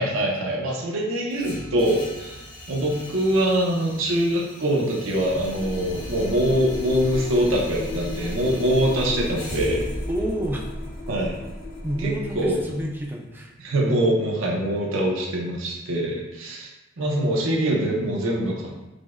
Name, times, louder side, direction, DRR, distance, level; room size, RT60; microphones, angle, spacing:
voice 1, 0.0-2.4 2.7-9.8 11.1-11.4 12.0-12.7 13.6-16.7 17.0-18.9, right 1 dB, 70° right, -2 dB, 0.6 m, -24 dB
sound 1, 1.3-13.3, equal, 60° left, 1.4 m, -40 dB
sound 2, 5.2-13.0, left 1 dB, 40° left, 0.8 m, -35 dB
voice 2, 10.1-10.7 11.8-13.5, equal, 10° right, 0 dB, 0.3 m, -29 dB
4.9 x 2.1 x 2.4 m, 1.1 s
head